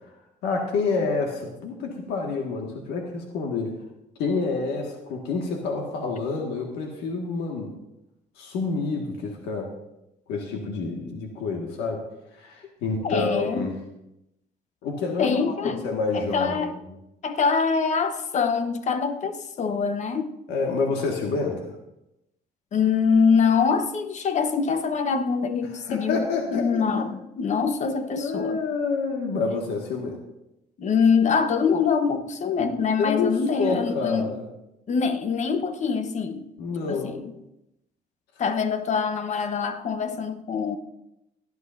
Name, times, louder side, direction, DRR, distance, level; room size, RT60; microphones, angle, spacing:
voice 1, 0.4-3.7 4.2-7.7 8.4-9.7 10.3-12.0 12.3-13.8 14.8-16.7 20.5-21.7 25.7-27.0 28.2-30.2 33.0-34.4 36.6-37.2, left 4 dB, 85° left, 1.8 m, -28 dB
voice 2, 13.0-13.7 15.2-15.8 16.1-16.7 17.2-20.3 22.7-28.6 30.8-34.3 34.9-36.5 36.9-37.3 38.4-40.8, left 5 dB, 45° left, 1.0 m, -24 dB
17.5 x 11.5 x 2.6 m
cardioid pair, 110°, 17 cm